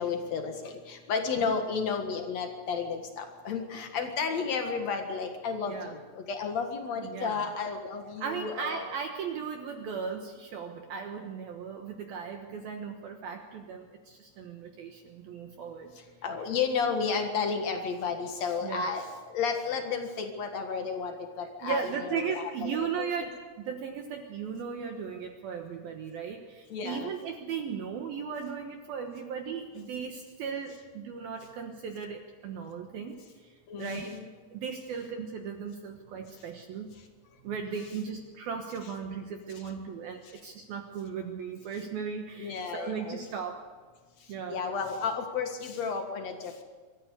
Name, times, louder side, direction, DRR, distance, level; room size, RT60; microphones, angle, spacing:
voice 1, 0.0-6.0 6.3-8.9 16.2-22.7 23.0-23.1 26.7-27.1 33.7-34.3 42.4-43.2 44.5-46.6, left 5 dB, 65° left, 5 dB, 1.7 m, -32 dB
voice 2, 5.6-6.0 7.0-7.5 8.2-15.9 16.4-16.5 18.6-18.9 21.4-34.2 34.5-36.9 37.4-43.6 44.3-44.7, right 6 dB, 70° right, 4 dB, 2.5 m, -37 dB
24.0 x 14.0 x 8.2 m, 1.4 s
omnidirectional pair, 5.7 m